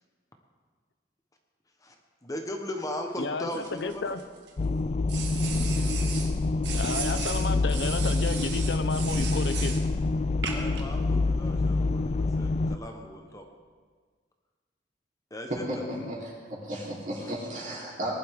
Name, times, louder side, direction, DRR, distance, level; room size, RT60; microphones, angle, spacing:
voice 1, 2.2-4.1 10.5-13.4 15.3-15.8 17.2-17.3, left 1 dB, 20° left, 3 dB, 1.1 m, -38 dB
voice 2, 3.2-4.2 6.7-9.8 15.9-16.1, left 3 dB, 70° left, 10 dB, 0.7 m, -32 dB
sound 1, 3.5-4.5 5.1-6.3 6.6-9.8 10.4-10.8, right 6 dB, 75° right, 1.6 m, -36 dB
sound 2, 4.6-12.8, left 3 dB, 40° left, 0.4 m, -26 dB
voice 3, 15.5-18.1, right 1 dB, 50° right, -4 dB, 3.6 m, -34 dB
19.5 x 11.5 x 3.7 m, 1.6 s
head